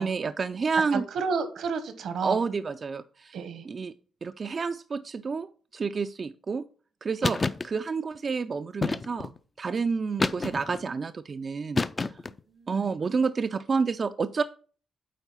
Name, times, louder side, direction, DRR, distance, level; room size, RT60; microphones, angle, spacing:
voice 1, 0.0-1.0 2.2-3.4 3.6-3.9 4.2-6.6 7.0-12.2 12.7-14.4, right 5 dB, 45° right, 9 dB, 0.4 m, -29 dB
voice 2, 0.9-2.4 3.3-3.7 7.2-7.3 12.2-12.9, right 5 dB, 75° right, 11 dB, 1.1 m, -32 dB
sound 1, 7.2-7.7 8.8-9.4 10.2-10.8 11.7-12.4, left 3 dB, 30° left, 0.4 m, -28 dB
9.1 x 3.9 x 5.6 m, 0.42 s
cardioid pair, 90°, 0 cm